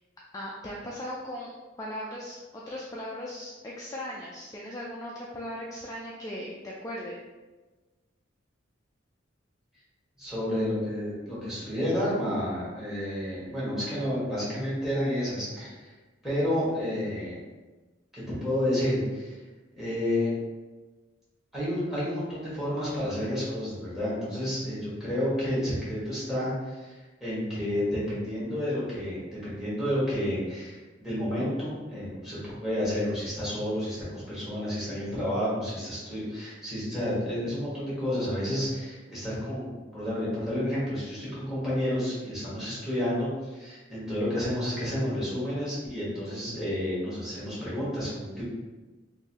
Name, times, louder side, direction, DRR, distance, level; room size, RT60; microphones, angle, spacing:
voice 1, 0.3-7.2, left 1 dB, 15° left, -4 dB, 0.3 m, -38 dB
voice 2, 10.2-15.9 16.2-17.4 18.1-19.3 19.8-20.3 21.5-48.4, left 1 dB, ahead, -9 dB, 1.5 m, -30 dB
3.8 x 2.7 x 2.8 m, 1.2 s
head